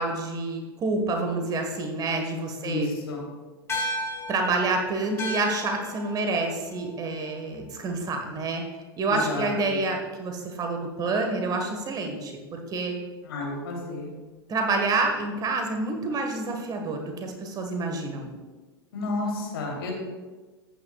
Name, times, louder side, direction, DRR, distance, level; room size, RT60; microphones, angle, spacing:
voice 1, 0.0-3.0 3.9-8.6 9.0-12.9 14.5-18.3, right 3 dB, 30° right, 3 dB, 1.6 m, -28 dB
voice 2, 2.6-3.2 9.1-9.8 13.2-14.1 18.9-19.9, left 2 dB, 70° left, -1 dB, 3.3 m, -31 dB
sound 1, 3.7-8.4, left 1 dB, 20° left, 2.8 m, -36 dB
14.0 x 9.1 x 2.4 m, 1.3 s
hypercardioid pair, 95°, 13 cm